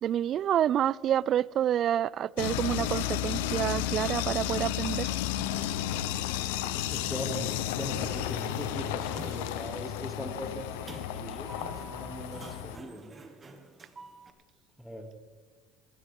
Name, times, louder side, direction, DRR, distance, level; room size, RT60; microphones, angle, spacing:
voice 1, 0.0-5.1, right 10 dB, 45° right, 24 dB, 0.4 m, -28 dB
sound 1, 2.4-12.8, left 11 dB, 85° left, 0.9 m, -32 dB
sound 2, 2.9-13.2, right 1 dB, 70° right, 6.6 m, -56 dB
voice 2, 6.9-13.2 14.8-15.1, equal, ahead, 4 dB, 2.6 m, -40 dB
Sliding door, 7.9-14.3, right 3 dB, 25° right, 2.0 m, -49 dB
20.5 x 17.0 x 3.7 m, 1.5 s
supercardioid pair, 105°, 0 cm